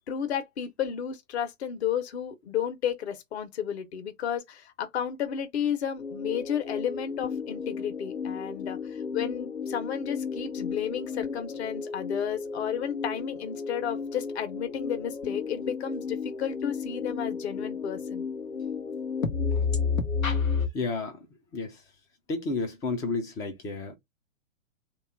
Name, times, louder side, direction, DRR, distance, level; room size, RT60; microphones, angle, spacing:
voice 1, 0.1-18.2, left 8 dB, 55° left, 1.2 m, -32 dB
sound 1, 6.0-20.7, left 5 dB, 90° left, 1.0 m, -33 dB
voice 2, 20.7-21.2 21.5-21.8 22.3-24.0, left 3 dB, 10° left, 0.4 m, -31 dB
3.2 x 2.9 x 4.5 m
figure-of-eight pair, 110°, 40 cm